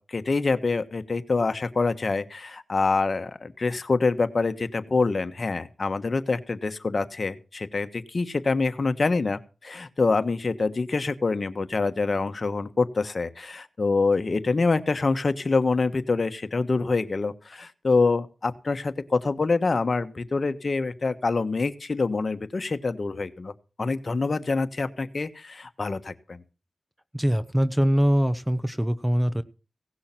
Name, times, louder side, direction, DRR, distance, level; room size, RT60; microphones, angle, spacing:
voice 1, 0.0-23.5 23.8-26.4, left 3 dB, 50° left, 9 dB, 1.3 m, -26 dB
voice 2, 27.1-29.4, equal, 10° right, 14 dB, 1.0 m, -23 dB
17.0 x 6.3 x 7.5 m, 0.35 s
cardioid pair, 55°, 0 cm